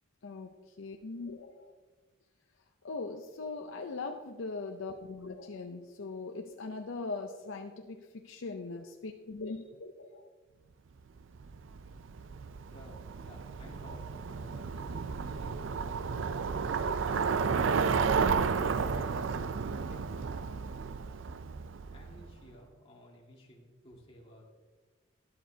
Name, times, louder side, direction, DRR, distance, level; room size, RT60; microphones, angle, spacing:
voice 1, 0.2-1.7 2.8-10.3, left 3 dB, 75° left, 4 dB, 0.6 m, -40 dB
Bicycle, 11.4-22.3, right 5 dB, 70° right, 0.4 m, -32 dB
voice 2, 12.7-16.4 16.8-17.4 17.8-20.5 21.9-24.4, equal, 30° left, -3 dB, 1.9 m, -55 dB
12.0 x 11.5 x 2.8 m, 1.4 s
head